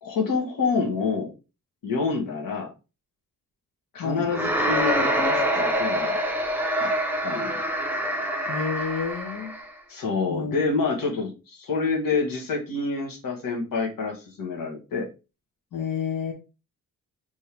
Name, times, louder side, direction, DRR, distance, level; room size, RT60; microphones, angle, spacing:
voice 1, 0.0-1.3 1.8-2.7 3.9-6.2 6.8-6.9 7.2-7.6 9.9-15.1, left 4 dB, 85° left, -1 dB, 1.6 m, -27 dB
sound 1, 4.3-9.7, equal, 5° right, 0.8 m, -25 dB
voice 2, 8.4-9.5 10.3-10.6 15.7-16.3, left 6 dB, 70° left, -2 dB, 1.5 m, -29 dB
4.4 x 3.4 x 3.3 m, 0.29 s
wide cardioid pair, 165°, 33 cm